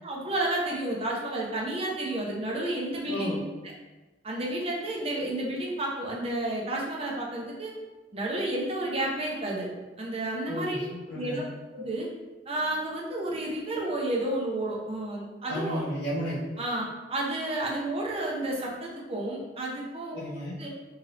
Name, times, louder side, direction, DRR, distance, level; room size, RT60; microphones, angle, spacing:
voice 1, 0.0-3.4 4.2-7.7 8.1-9.7 10.0-10.8 11.1-11.5 11.7-12.1 12.5-15.8 16.6-20.2 20.6-20.7, right 1 dB, 35° right, -3 dB, 0.6 m, -31 dB
voice 2, 3.1-3.4 10.5-11.5 15.5-16.4 20.1-20.6, equal, 70° left, -10 dB, 0.7 m, -33 dB
2.8 x 2.5 x 3.1 m, 1.2 s
head